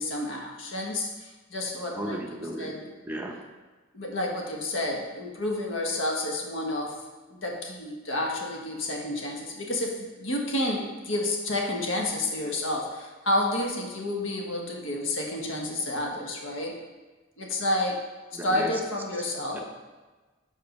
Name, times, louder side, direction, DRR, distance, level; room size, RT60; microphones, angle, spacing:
voice 1, 0.0-2.2 2.6-2.9 3.9-6.9 7.3-16.7 17.4-18.0 18.4-19.6, left 1 dB, 80° left, 0 dB, 1.1 m, -30 dB
voice 2, 1.9-2.8 3.0-3.4 18.3-18.8 19.2-19.3 19.5-19.6, right 1 dB, 10° right, 0 dB, 0.7 m, -35 dB
5.0 x 4.3 x 5.2 m, 1.3 s
head